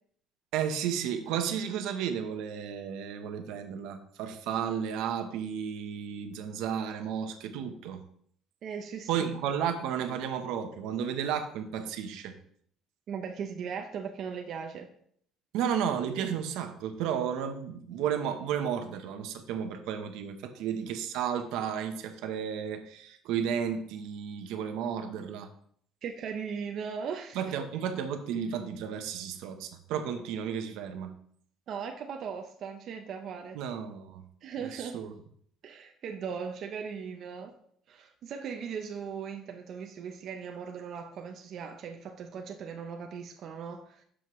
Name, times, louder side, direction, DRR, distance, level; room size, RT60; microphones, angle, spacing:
voice 1, 0.5-8.0 9.1-12.3 15.5-25.5 27.3-31.1 33.5-34.3 34.6-35.1, right 8 dB, 80° right, 0.9 m, -33 dB
voice 2, 8.6-9.7 13.1-14.9 26.0-27.7 31.7-33.6 34.4-35.0 35.6-37.6 37.9-44.0, right 6 dB, 45° right, 0.7 m, -38 dB
11.0 x 6.3 x 3.1 m
cardioid pair, 170°, 0 cm